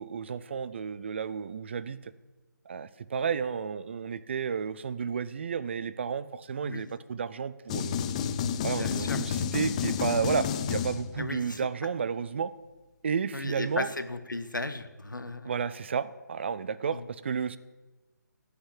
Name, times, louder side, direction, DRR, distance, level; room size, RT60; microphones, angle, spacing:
voice 1, 0.0-2.1 2.7-8.0 8.6-12.5 13.0-13.9 15.4-17.6, right 6 dB, 35° right, 16 dB, 0.5 m, -32 dB
sound 1, 7.7-11.4, left 7 dB, 20° left, 0.5 m, -30 dB
voice 2, 8.7-9.2 11.2-11.6 13.3-15.5 16.9-17.0, left 2 dB, 80° left, 10 dB, 1.2 m, -36 dB
16.5 x 5.8 x 8.4 m, 1.2 s
figure-of-eight pair, 150°, 10 cm